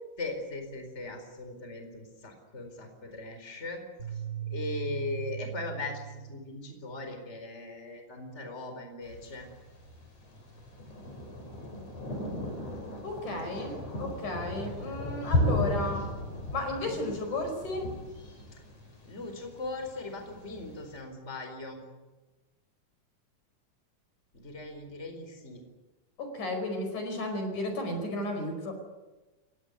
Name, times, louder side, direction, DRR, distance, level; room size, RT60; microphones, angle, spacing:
voice 1, 0.2-3.8 4.1-4.2 4.5-9.5 18.5-18.6 19.0-21.8 24.3-25.6, left 3 dB, 20° left, 5 dB, 4.5 m, -39 dB
sound 1, 4.0-6.5, right 10 dB, 25° right, 5.0 m, -38 dB
Thunder, 9.0-21.0, left 1 dB, 50° left, 6.6 m, -35 dB
voice 2, 13.0-16.1 16.5-17.9 26.2-28.7, left 1 dB, 70° left, 5 dB, 6.4 m, -33 dB
29.5 x 16.5 x 9.6 m, 1.1 s
omnidirectional pair, 3.7 m